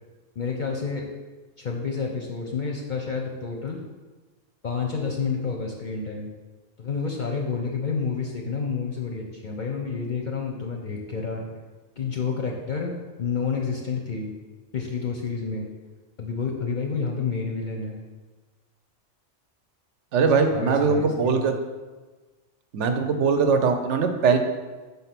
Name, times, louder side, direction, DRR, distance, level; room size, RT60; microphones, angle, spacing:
voice 1, 0.4-1.1 1.6-3.8 4.6-6.3 6.8-11.5 12.0-14.3 14.7-15.7 16.2-18.0 20.2-21.5, left 5 dB, 50° left, 1 dB, 0.6 m, -29 dB
voice 2, 20.1-21.5 22.7-24.4, right 5 dB, 70° right, 6 dB, 1.0 m, -21 dB
5.6 x 3.9 x 5.8 m, 1.3 s
omnidirectional pair, 1.3 m